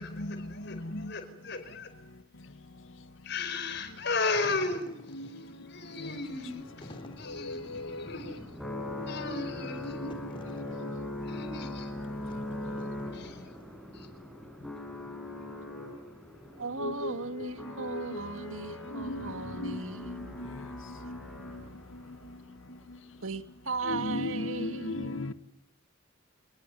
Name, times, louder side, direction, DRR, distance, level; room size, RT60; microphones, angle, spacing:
voice 1, 0.0-1.9 3.2-4.9 5.3-5.4 5.7-8.4 9.1-10.2 11.2-11.9 13.1-13.5 13.9-14.1, left 3 dB, 55° left, 5.1 m, -35 dB
Wind / Fire, 4.2-13.6, left 1 dB, 25° left, 3.0 m, -52 dB
sound 1, 5.8-22.0, left 1 dB, ahead, 6.6 m, -42 dB
voice 2, 7.3-8.1 9.8-10.2 10.6-10.7 16.8-17.5 17.8-18.2 18.9-19.3 19.6-19.8 20.1-20.5 21.0-21.2 23.9-25.3, left 2 dB, 70° left, 1.7 m, -36 dB
voice 3, 16.6-20.5 23.2-25.2, right 3 dB, 80° right, 2.4 m, -37 dB
28.5 x 20.0 x 9.6 m
head